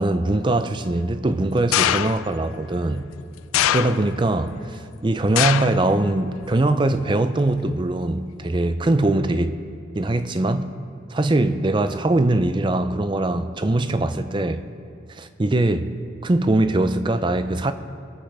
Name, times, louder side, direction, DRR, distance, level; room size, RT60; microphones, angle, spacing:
voice 1, 0.0-3.1 3.7-9.5 10.0-10.7 11.1-14.6 15.1-15.9 16.2-17.7, right 2 dB, 25° right, 10 dB, 0.4 m, -22 dB
sound 1, 1.7-2.4 3.5-4.3 5.4-5.9 6.2-6.7 7.6-7.7, left 11 dB, 85° left, 0.3 m, -22 dB
22.5 x 8.0 x 3.3 m, 2.6 s
head